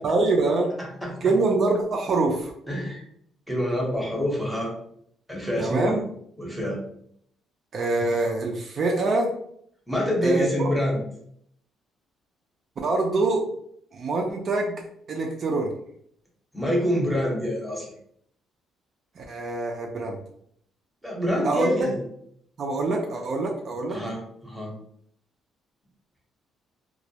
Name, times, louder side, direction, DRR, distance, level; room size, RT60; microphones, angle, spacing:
voice 1, 0.0-0.7 1.2-2.5 5.6-6.0 7.7-9.3 10.2-10.7 12.8-13.4 13.9-14.8 15.1-15.7 19.2-20.2 21.4-21.9 22.6-24.0, right 3 dB, 45° right, 1 dB, 0.3 m, -24 dB
voice 2, 0.8-1.2 2.7-3.0 3.5-4.7 5.3-6.0 6.4-6.8 9.9-11.0 16.5-17.9 21.0-22.0 23.9-24.7, equal, ahead, -3 dB, 0.7 m, -26 dB
2.2 x 2.1 x 2.7 m, 0.68 s
cardioid pair, 135°, 0 cm